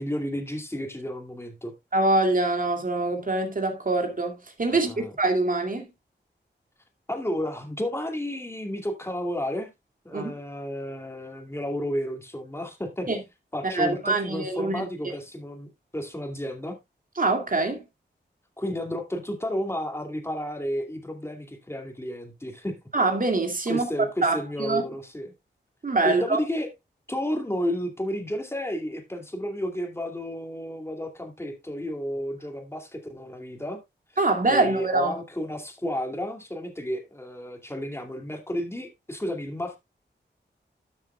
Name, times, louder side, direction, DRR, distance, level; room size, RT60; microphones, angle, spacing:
voice 1, 0.0-1.7 4.7-5.1 7.1-9.7 10.0-13.1 13.5-16.8 18.6-22.8 23.7-25.3 26.0-26.7 27.1-33.8 34.5-39.8, equal, 15° left, 2.5 m, -32 dB
voice 2, 1.9-5.9 10.1-10.3 13.1-13.2 13.7-15.2 17.2-17.8 22.9-23.9 24.2-24.8 25.8-26.4 34.2-35.1, right 2 dB, 45° right, 2.4 m, -24 dB
13.0 x 7.2 x 2.3 m
wide cardioid pair, 70°, 19 cm